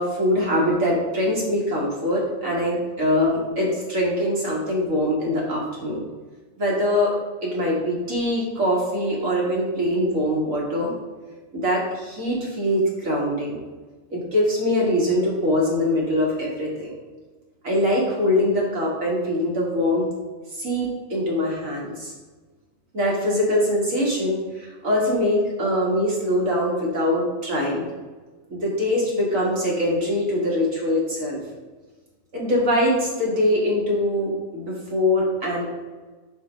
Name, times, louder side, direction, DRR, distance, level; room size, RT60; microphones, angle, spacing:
voice 1, 0.0-6.0 6.6-7.1 7.4-10.9 11.5-13.6 14.1-16.9 17.6-20.1 20.6-22.1 22.9-27.9 28.5-31.4 32.3-35.7, left 1 dB, 90° right, -3 dB, 2.2 m, -23 dB
5.2 x 4.5 x 5.1 m, 1.3 s
omnidirectional pair, 1.3 m